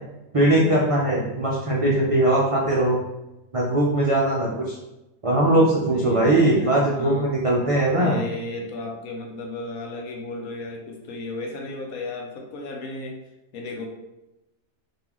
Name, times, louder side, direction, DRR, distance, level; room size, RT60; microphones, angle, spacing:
voice 1, 0.3-3.0 3.5-4.8 5.2-8.2, right 1 dB, 65° right, -5 dB, 0.3 m, -20 dB
voice 2, 5.9-7.3 8.0-13.1 13.5-13.9, left 2 dB, 80° left, 1 dB, 1.2 m, -34 dB
3.9 x 2.7 x 2.9 m, 0.94 s
omnidirectional pair, 1.5 m